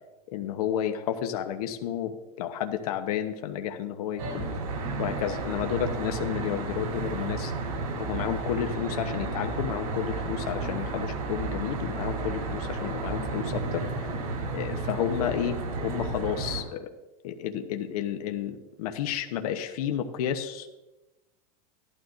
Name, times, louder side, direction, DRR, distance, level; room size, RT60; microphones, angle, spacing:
voice 1, 0.3-4.5 5.0-7.5 8.0-14.1 14.5-16.9 17.2-20.7, left 10 dB, 75° left, 6 dB, 1.0 m, -31 dB
Traffic noise roadway noise, 4.2-16.6, right 3 dB, 90° right, 3.7 m, -32 dB
15.5 x 12.0 x 2.6 m, 1.0 s
supercardioid pair, 160°, 19 cm